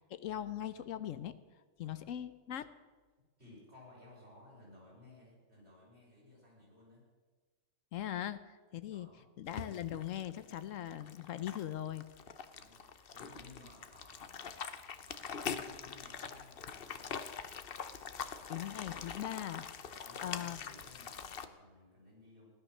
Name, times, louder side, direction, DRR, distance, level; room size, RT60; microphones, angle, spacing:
voice 1, 0.0-1.4 1.8-2.7 7.9-9.1 9.4-12.1 18.5-19.7 20.2-20.6, left 11 dB, 80° left, 13 dB, 1.1 m, -40 dB
voice 2, 3.4-7.1 8.8-9.3 12.5-17.2 19.8-22.5, left 2 dB, 55° right, -5 dB, 7.0 m, -59 dB
sound 1, 9.5-21.5, left 6 dB, 50° left, 1.0 m, -44 dB
16.5 x 12.0 x 6.6 m, 1.4 s
omnidirectional pair, 1.3 m